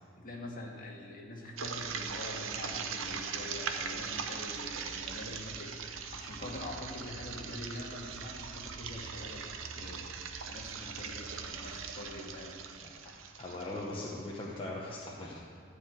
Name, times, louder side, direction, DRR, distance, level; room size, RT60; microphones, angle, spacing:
voice 1, 0.2-5.7 6.1-9.4 9.8-10.1 10.5-12.5, left 1 dB, 45° left, -1 dB, 1.7 m, -44 dB
sound 1, 1.6-14.4, right 6 dB, 75° right, 0.7 m, -40 dB
voice 2, 13.4-15.4, left 2 dB, 25° left, -4 dB, 0.9 m, -39 dB
13.0 x 4.8 x 8.0 m, 2.3 s
head